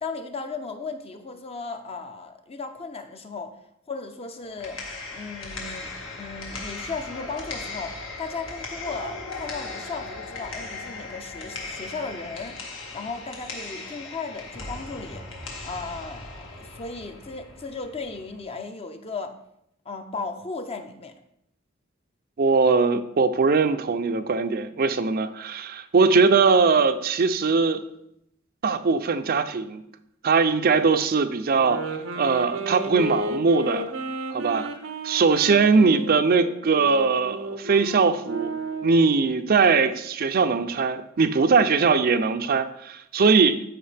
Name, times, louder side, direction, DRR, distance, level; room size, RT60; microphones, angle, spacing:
voice 1, 0.0-3.6 3.9-4.8 5.1-12.6 12.9-15.3 15.6-19.4 19.9-21.1, left 4 dB, 30° left, 6 dB, 0.7 m, -36 dB
sound 1, 4.4-18.4, left 3 dB, 80° left, 1.8 m, -38 dB
voice 2, 22.4-27.8 28.6-29.8 30.2-31.8 32.2-33.9 34.3-34.7 35.0-38.5 38.8-43.6, right 4 dB, 50° right, 9 dB, 0.5 m, -21 dB
sound 2, 31.6-39.1, right 1 dB, 90° right, 0.8 m, -33 dB
13.5 x 4.8 x 3.4 m, 0.78 s
head